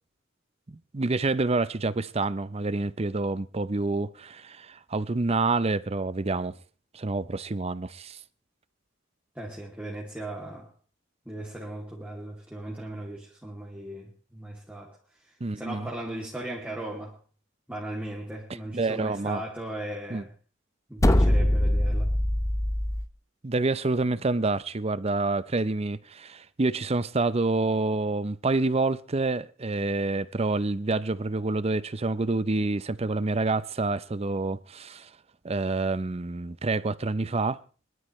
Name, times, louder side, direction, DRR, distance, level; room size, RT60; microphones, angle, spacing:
voice 1, 0.7-6.5 6.9-8.2 15.4-15.9 18.7-19.4 20.1-20.2 23.4-35.1 35.4-37.6, right 3 dB, 30° right, 0.6 m, -27 dB
voice 2, 9.3-10.7 11.3-17.2 17.7-20.3 20.9-22.1, right 1 dB, 10° right, 2.7 m, -38 dB
sound 1, 21.0-23.1, left 1 dB, 15° left, 0.7 m, -22 dB
24.5 x 12.5 x 3.2 m
head